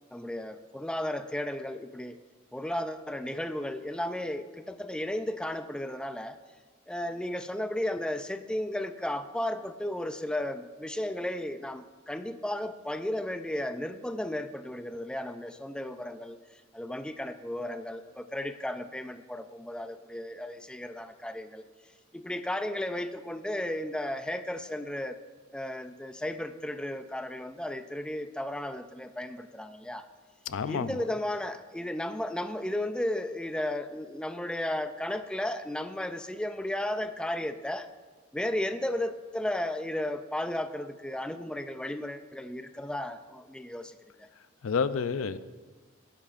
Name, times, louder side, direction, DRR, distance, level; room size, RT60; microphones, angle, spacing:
voice 1, 0.1-2.2 2.5-6.4 6.9-21.6 22.1-25.2 25.5-30.1 30.7-37.9 38.3-44.3, left 1 dB, 5° left, 9 dB, 0.4 m, -34 dB
voice 2, 30.5-31.0 44.6-45.4, left 5 dB, 75° left, 13 dB, 0.5 m, -29 dB
18.5 x 10.0 x 2.5 m, 1.3 s
head